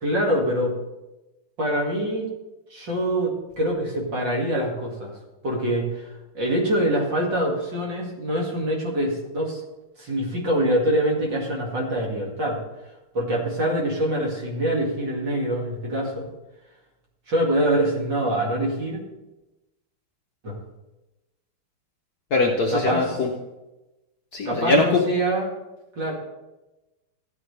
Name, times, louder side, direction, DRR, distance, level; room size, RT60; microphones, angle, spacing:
voice 1, 0.0-0.8 1.6-2.2 2.7-5.2 5.4-9.6 10.0-12.6 13.1-16.3 17.3-19.0 20.4-20.6 22.7-23.2 24.5-25.5 26.0-26.1, right 1 dB, 55° right, -2 dB, 2.9 m, -24 dB
voice 2, 22.3-23.3 24.3-25.0, left 3 dB, 55° left, 1 dB, 1.2 m, -21 dB
14.5 x 9.5 x 3.3 m, 1.0 s
omnidirectional pair, 2.4 m